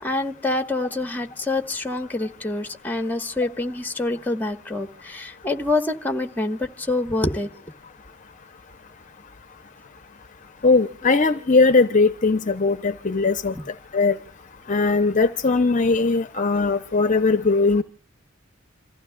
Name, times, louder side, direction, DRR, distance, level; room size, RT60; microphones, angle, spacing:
voice 1, 0.0-7.5, left 2 dB, 10° left, 7 dB, 1.3 m, -26 dB
voice 2, 10.6-13.5 13.9-14.1 14.7-17.8, left 3 dB, 40° left, 10 dB, 0.7 m, -19 dB
28.0 x 15.0 x 2.3 m, 0.41 s
head